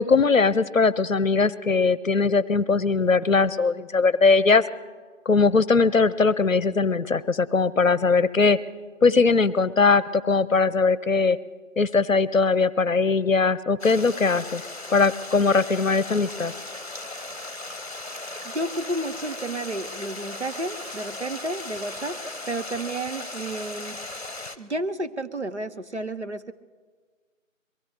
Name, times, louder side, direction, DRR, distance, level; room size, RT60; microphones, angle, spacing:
voice 1, 0.0-4.6 5.3-8.6 9.0-11.4 11.8-14.6 14.9-16.5, left 4 dB, 75° left, 19 dB, 0.7 m, -20 dB
Stream, 13.8-24.6, left 2 dB, 50° left, 1.0 m, -37 dB
voice 2, 18.4-22.2 22.5-24.0 24.6-26.5, right 2 dB, 55° right, 9 dB, 0.7 m, -31 dB
23.0 x 16.0 x 3.4 m, 1.5 s
figure-of-eight pair, 175°, 40 cm